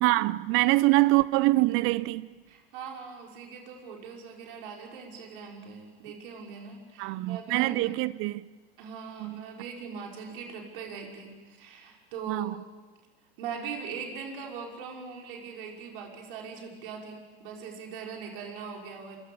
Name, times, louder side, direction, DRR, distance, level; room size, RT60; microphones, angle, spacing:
voice 1, 0.0-2.3 7.0-8.4 9.2-9.4 12.3-12.5, right 20 dB, 45° right, 0.8 m, -24 dB
voice 2, 2.5-7.9 8.8-12.5 13.4-19.2, right 6 dB, 60° right, 5.6 m, -41 dB
27.0 x 25.0 x 7.1 m
hypercardioid pair, 85°, 29 cm